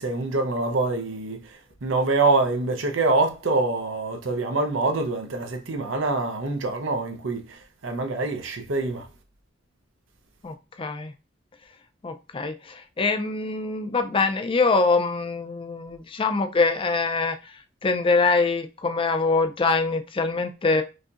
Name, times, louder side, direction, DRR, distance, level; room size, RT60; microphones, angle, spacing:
voice 1, 0.0-1.4 1.8-9.0, right 3 dB, 80° right, 0.8 m, -25 dB
voice 2, 10.4-11.1 12.0-17.5 17.8-20.8, left 3 dB, 25° left, 0.4 m, -24 dB
4.9 x 2.7 x 2.4 m
head